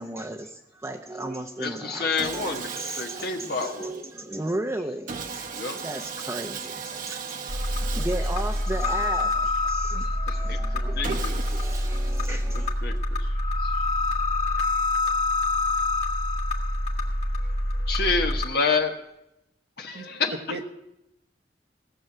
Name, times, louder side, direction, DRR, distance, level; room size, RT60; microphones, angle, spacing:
voice 1, 0.0-12.7, right 1 dB, 15° right, 0.7 m, -36 dB
voice 2, 1.6-2.7 3.0-3.9 5.5-5.8 7.7-7.8 9.9-11.4 12.3-13.3 13.6-13.9 14.5-14.7 17.9-19.0 19.8-20.4, left 4 dB, 60° left, 1.2 m, -29 dB
Sawing, 2.2-4.2 5.1-9.6 11.0-12.8, right 5 dB, 50° right, 1.1 m, -37 dB
sound 1, 7.5-18.4, left 2 dB, 40° left, 2.1 m, -26 dB
voice 3, 10.9-11.2 11.5-11.6 19.9-20.1 20.5-20.7, right 3 dB, 65° right, 1.2 m, -37 dB
17.5 x 7.0 x 7.9 m
head